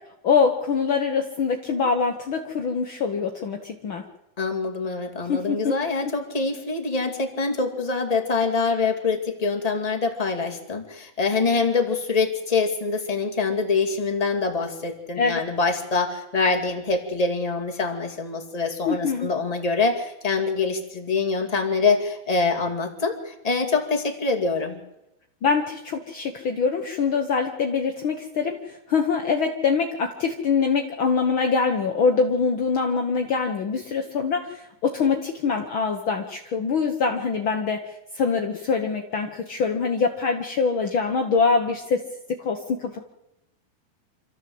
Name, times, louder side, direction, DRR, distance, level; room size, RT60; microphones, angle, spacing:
voice 1, 0.2-4.0 5.3-5.8 15.1-15.4 18.8-19.3 25.4-42.0 42.3-43.0, left 5 dB, 75° left, 3 dB, 1.1 m, -24 dB
voice 2, 4.4-24.8, left 4 dB, 15° left, 3 dB, 1.5 m, -25 dB
26.5 x 14.5 x 7.9 m, 0.90 s
omnidirectional pair, 4.3 m